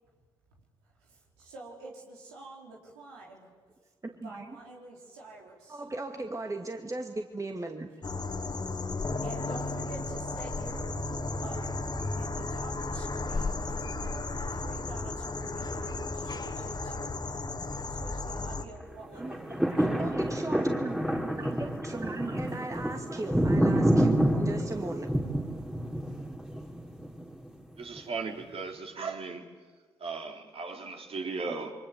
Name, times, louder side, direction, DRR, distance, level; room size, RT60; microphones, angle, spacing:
voice 1, 1.0-3.5 4.2-5.8 9.2-10.9 11.4-13.6 14.0-17.2 17.6-19.9, right 2 dB, 85° right, -2 dB, 4.3 m, -48 dB
voice 2, 4.0-4.6 5.7-8.0 19.1-25.1, right 2 dB, 25° right, 4 dB, 2.3 m, -38 dB
sound 1, 8.0-18.7, left 3 dB, 35° left, 2.6 m, -34 dB
sound 2, 19.2-27.5 28.0-28.1, right 1 dB, 5° right, 3.1 m, -28 dB
voice 3, 27.8-29.4 30.0-31.7, right 4 dB, 50° right, 2 dB, 3.9 m, -36 dB
28.0 x 23.5 x 7.9 m, 1.4 s
hypercardioid pair, 45°, 12 cm